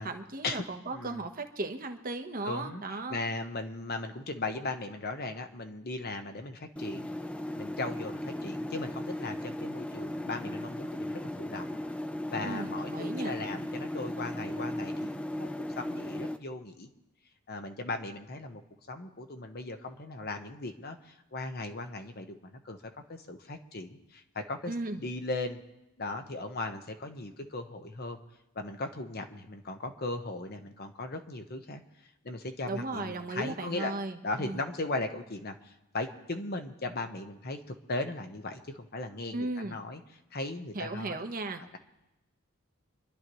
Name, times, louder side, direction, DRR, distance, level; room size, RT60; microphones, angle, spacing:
voice 1, 0.0-3.2 12.4-13.3 24.7-25.1 32.7-34.6 39.3-39.8 40.7-41.6, right 2 dB, 40° right, 6 dB, 1.1 m, -36 dB
voice 2, 0.9-1.2 2.4-7.1 7.5-11.8 12.3-16.9 17.5-18.6 18.9-22.8 23.1-24.7 25.0-25.6 26.0-28.2 28.5-31.8 32.2-33.9 34.2-40.0 40.3-41.2, left 2 dB, 45° left, 6 dB, 1.1 m, -37 dB
sound 1, 6.8-16.4, left 1 dB, 5° left, 0.4 m, -36 dB
26.5 x 11.5 x 3.1 m, 0.95 s
head